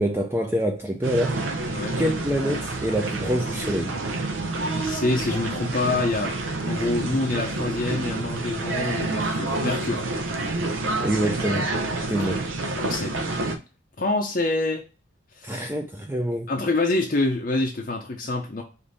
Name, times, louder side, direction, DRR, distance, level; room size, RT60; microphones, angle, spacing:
voice 1, 0.0-1.4 2.0-4.0 11.0-11.7 12.1-12.5 15.4-16.5, equal, 10° right, 0.4 m, -26 dB
sound 1, 1.0-13.6, right 2 dB, 85° right, 0.7 m, -28 dB
voice 2, 4.8-6.3 6.7-10.0 12.8-13.1 14.0-14.8 15.4-15.6 16.5-18.6, left 2 dB, 45° left, 0.6 m, -26 dB
5.2 x 2.6 x 3.9 m
head